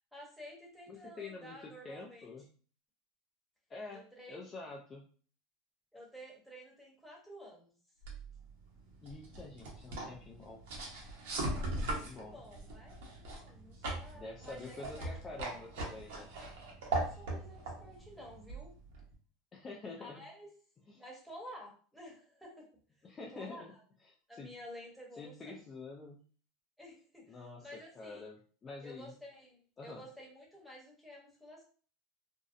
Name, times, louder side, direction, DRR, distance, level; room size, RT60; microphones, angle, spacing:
voice 1, 0.1-2.3 3.9-4.4 5.9-7.7 11.4-15.4 16.8-18.7 19.8-20.5 20.9-22.7 23.3-23.8 24.3-25.6 26.8-28.3 28.8-31.6, equal, ahead, -3 dB, 0.9 m, -52 dB
voice 2, 0.9-2.5 3.7-5.0 9.0-10.6 11.8-12.4 13.8-16.3 19.5-20.2 20.9-21.0 23.0-23.7 24.1-24.5 25.2-26.2 27.3-27.7 28.0-29.1 29.8-30.0, left 3 dB, 25° left, -1 dB, 0.3 m, -47 dB
sound 1, 8.0-19.1, right 2 dB, 80° right, 0.8 m, -40 dB
2.6 x 2.0 x 2.4 m, 0.42 s
supercardioid pair, 125°, 0 cm